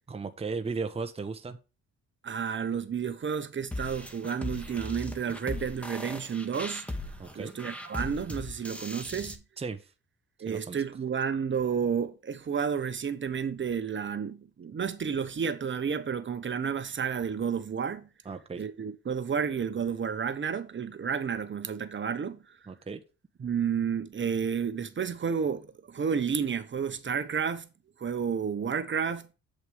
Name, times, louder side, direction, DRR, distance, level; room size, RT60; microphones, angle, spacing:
voice 1, 0.1-1.6 7.2-7.5 9.6-9.9 10.5-10.8 18.2-18.6 22.7-23.0, right 4 dB, 20° right, 1.0 m, -36 dB
voice 2, 2.2-6.8 7.3-9.4 10.4-18.1 18.6-22.4 23.4-27.7 28.0-29.3, right 7 dB, 40° right, 1.1 m, -31 dB
sound 1, 3.7-9.3, left 1 dB, 5° left, 1.6 m, -38 dB
8.0 x 7.8 x 3.4 m
cardioid pair, 90°, 30 cm